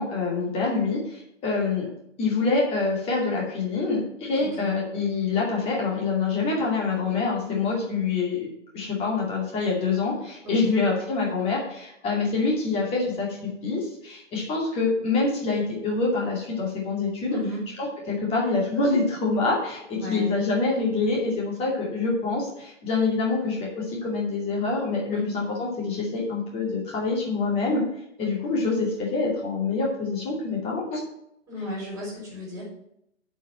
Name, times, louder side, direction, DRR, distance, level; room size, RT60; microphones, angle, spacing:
voice 1, 0.0-1.9 2.2-8.5 8.7-13.3 13.6-17.4 18.1-27.8 28.2-31.0, left 3 dB, 15° left, -3 dB, 2.5 m, -26 dB
voice 2, 4.3-4.7 7.5-7.8 10.4-10.7 17.3-17.6 19.9-20.4 25.1-25.4 31.5-32.6, left 1 dB, 10° right, -4 dB, 4.1 m, -34 dB
7.8 x 5.2 x 7.2 m, 0.76 s
figure-of-eight pair, 130°, 37 cm